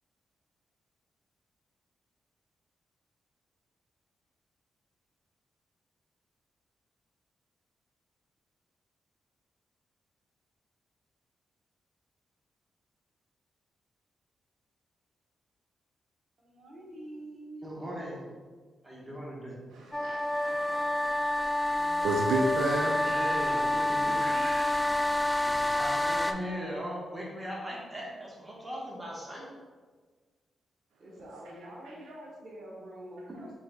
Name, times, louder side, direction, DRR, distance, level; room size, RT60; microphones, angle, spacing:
voice 1, 16.4-17.6 21.7-22.1 23.1-25.0 31.0-33.6, right 1 dB, 60° right, -2 dB, 1.1 m, -46 dB
voice 2, 17.6-18.2 18.8-19.6 23.0-24.2 25.4-29.5, equal, 25° right, -4 dB, 1.3 m, -39 dB
voice 3, 19.7-20.7 22.0-23.1 24.2-24.9, right 2 dB, 85° right, 0 dB, 0.3 m, -31 dB
sound 1, 19.9-26.3, left 1 dB, 10° left, 0.4 m, -28 dB
4.4 x 3.8 x 2.3 m, 1.4 s
supercardioid pair, 55°, 0 cm